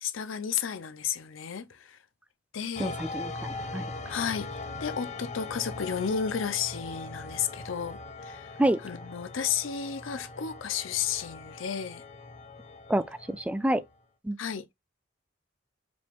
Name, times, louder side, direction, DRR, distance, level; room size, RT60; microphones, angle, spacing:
voice 1, 0.0-2.0 2.5-3.0 4.1-8.6 8.8-12.0 14.4-14.7, left 7 dB, 85° left, 0.6 m, -33 dB
sound 1, 2.7-13.9, left 3 dB, 35° left, 0.6 m, -41 dB
voice 2, 2.8-3.9 8.6-8.8 12.9-13.8 14.2-14.4, right 1 dB, 5° right, 0.3 m, -28 dB
5.1 x 2.5 x 3.5 m
head